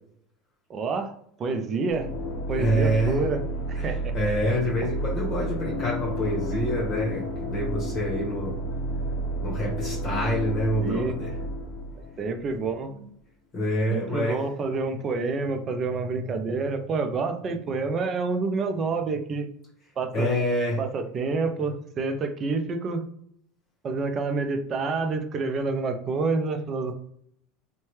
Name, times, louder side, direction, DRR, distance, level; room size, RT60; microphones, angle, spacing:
voice 1, 0.7-1.1 1.4-2.1 2.5-4.1 10.8-11.2 12.0-13.2 13.9-19.5 20.0-20.3 20.8-23.0 23.8-26.9, right 4 dB, 35° right, 7 dB, 0.5 m, -28 dB
sound 1, 1.9-12.7, right 1 dB, 60° left, 0.7 m, -31 dB
voice 2, 2.5-3.2 3.7-8.5 9.4-11.3 13.5-14.4 20.1-20.8, equal, 30° left, -3 dB, 1.1 m, -27 dB
2.7 x 2.2 x 3.2 m, 0.67 s
hypercardioid pair, 95°, 0 cm